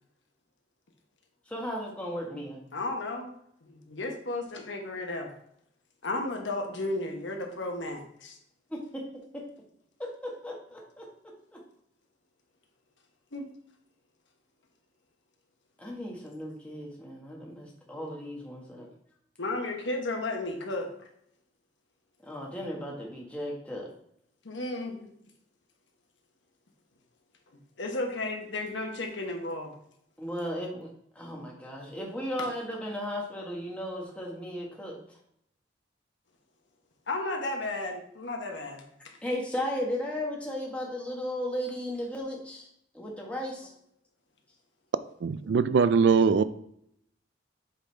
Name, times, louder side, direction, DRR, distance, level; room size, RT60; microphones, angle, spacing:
voice 1, 1.5-2.6 8.7-9.0 9.3-9.4 10.0-11.1 11.5-11.6 15.8-18.9 22.2-23.9 30.2-30.9 31.1-35.2 39.2-42.7 42.9-43.7, equal, 5° left, -3 dB, 1.3 m, -35 dB
voice 2, 2.3-3.3 3.6-5.3 6.0-8.4 13.3-13.5 19.4-20.9 24.4-25.1 27.5-29.7 37.1-38.8, left 2 dB, 75° left, 3 dB, 1.1 m, -34 dB
voice 3, 45.2-46.4, right 5 dB, 70° right, 14 dB, 0.3 m, -22 dB
8.0 x 3.9 x 3.4 m, 0.72 s
head